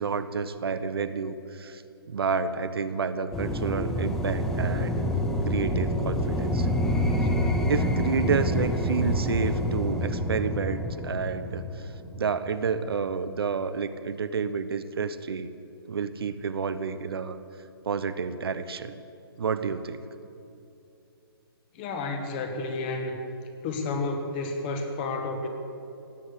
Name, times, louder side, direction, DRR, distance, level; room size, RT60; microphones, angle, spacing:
voice 1, 0.0-1.8 2.1-5.0 5.5-6.7 7.7-15.5 15.9-17.4 17.8-18.9 19.4-20.0, right 5 dB, 70° right, 11 dB, 0.9 m, -30 dB
sound 1, 3.3-12.4, equal, 5° left, 0.5 m, -27 dB
voice 2, 21.7-23.2 23.6-25.5, left 3 dB, 25° left, 5 dB, 1.5 m, -31 dB
16.5 x 9.7 x 8.2 m, 2.7 s
hypercardioid pair, 165°, 13 cm